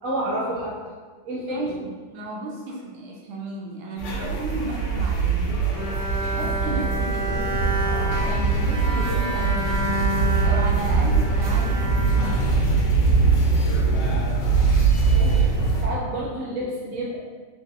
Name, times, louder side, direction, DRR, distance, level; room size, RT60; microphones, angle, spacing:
voice 1, 0.0-0.7 1.2-1.7 15.1-17.2, right 1 dB, 65° right, -6 dB, 0.8 m, -29 dB
voice 2, 1.5-5.7 6.3-7.7 8.2-10.0 10.4-12.8, right 2 dB, 85° right, 0 dB, 1.4 m, -34 dB
sound 1, 4.0-15.9, right 4 dB, 75° left, 1.3 m, -22 dB
Bowed string instrument, 5.7-13.1, right 1 dB, 45° left, 1.1 m, -30 dB
3.8 x 2.7 x 2.4 m, 1.4 s
omnidirectional pair, 2.3 m